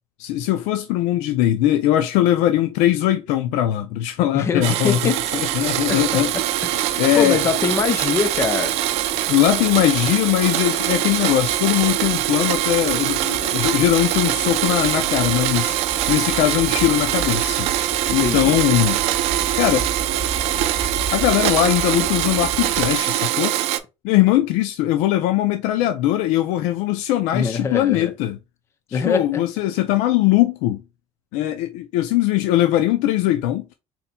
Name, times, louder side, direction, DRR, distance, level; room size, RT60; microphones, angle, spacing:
voice 1, 0.2-6.3 7.0-7.4 9.3-17.7 18.1-19.0 19.5-19.9 21.1-23.5 24.0-28.4 28.9-30.8 31.3-33.7, left 13 dB, 85° left, 0.5 m, -20 dB
voice 2, 4.3-5.3 5.9-6.0 6.7-8.8 18.1-18.6 27.3-28.1 28.9-29.4, left 6 dB, 25° left, 0.5 m, -23 dB
Domestic sounds home sounds, 4.6-23.8, right 13 dB, 60° right, 0.5 m, -23 dB
sound 1, 5.1-23.0, right 2 dB, 5° right, 1.0 m, -35 dB
4.2 x 4.0 x 2.3 m
cardioid pair, 175°, 12 cm